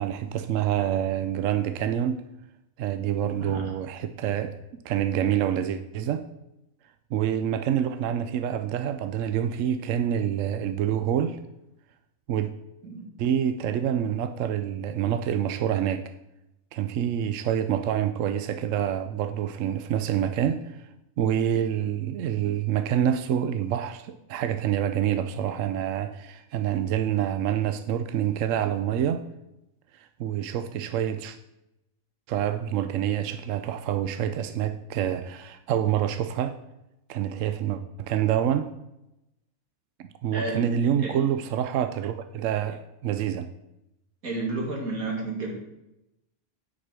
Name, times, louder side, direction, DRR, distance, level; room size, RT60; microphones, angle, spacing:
voice 1, 0.0-2.2 2.8-4.5 4.8-6.2 7.1-11.4 12.3-12.5 13.2-16.1 16.7-20.8 21.2-29.2 30.0-31.4 32.3-36.6 37.1-38.7 40.0-43.5, right 10 dB, 70° right, 9 dB, 0.9 m, -27 dB
voice 2, 3.4-3.7 12.8-13.1 40.3-40.7 41.0-41.2 44.2-45.5, right 2 dB, 85° right, 0 dB, 2.5 m, -31 dB
9.6 x 5.1 x 6.1 m, 0.89 s
omnidirectional pair, 1.5 m